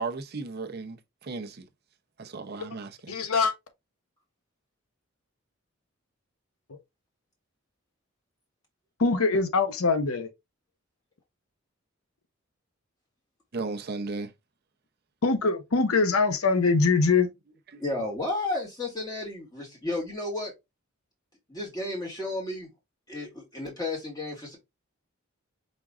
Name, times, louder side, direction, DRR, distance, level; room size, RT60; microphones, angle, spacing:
voice 1, 0.0-1.7 2.2-3.2 13.5-14.3, right 3 dB, 50° right, 0.6 m, -35 dB
voice 2, 3.1-3.5 9.0-10.3 15.2-17.3, left 4 dB, 90° left, 0.8 m, -23 dB
voice 3, 17.8-20.5 21.5-22.7 23.1-24.6, left 2 dB, 20° left, 2.0 m, -32 dB
5.2 x 3.6 x 2.4 m
head